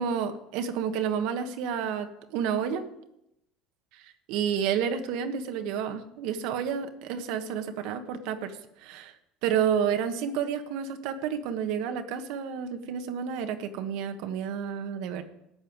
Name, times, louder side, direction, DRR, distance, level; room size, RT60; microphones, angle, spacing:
voice 1, 0.0-2.8 3.9-9.1 9.4-15.2, right 7 dB, 75° right, 7 dB, 1.3 m, -30 dB
13.5 x 5.6 x 9.4 m, 0.82 s
supercardioid pair, 115°, 0 cm